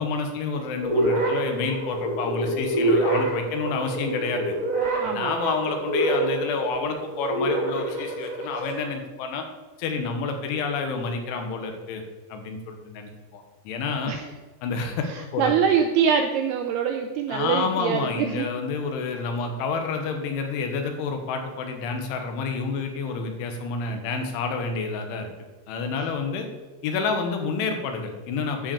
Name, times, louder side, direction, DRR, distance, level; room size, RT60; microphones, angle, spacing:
voice 1, 0.0-4.5 5.1-9.5 9.8-12.0 12.3-14.2 14.6-15.5 17.3-25.3 25.7-26.5 26.8-28.7, left 4 dB, 85° left, 5 dB, 3.7 m, -29 dB
sound 1, 0.8-8.8, right 2 dB, 30° right, 1.4 m, -26 dB
voice 2, 5.0-5.3 14.1-14.2 15.1-18.5, right 7 dB, 85° right, 5 dB, 2.3 m, -24 dB
11.5 x 5.2 x 7.2 m, 1.2 s
omnidirectional pair, 5.4 m